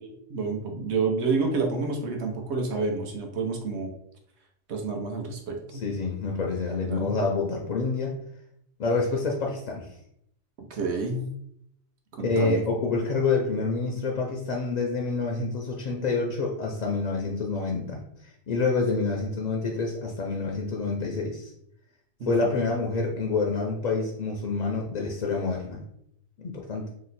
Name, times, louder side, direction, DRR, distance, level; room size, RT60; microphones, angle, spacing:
voice 1, 0.0-3.9 4.7-5.8 6.8-7.1 10.7-11.2 12.1-12.6 18.8-18.9 22.2-22.6, right 4 dB, 75° right, 2 dB, 1.0 m, -29 dB
voice 2, 5.7-8.1 8.8-9.9 12.2-18.0 18.5-21.5 22.3-25.8 26.4-26.9, left 3 dB, 60° left, 0 dB, 0.4 m, -27 dB
2.9 x 2.0 x 4.0 m, 0.73 s
omnidirectional pair, 1.2 m